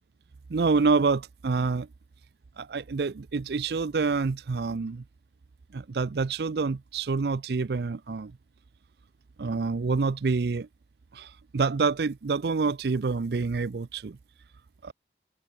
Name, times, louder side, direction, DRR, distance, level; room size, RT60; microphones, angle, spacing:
voice 1, 0.5-1.9 2.6-5.0 5.7-8.4 9.4-10.7 11.1-14.2 14.8-14.9, right 4 dB, 70° right, 0.5 m, -27 dB
head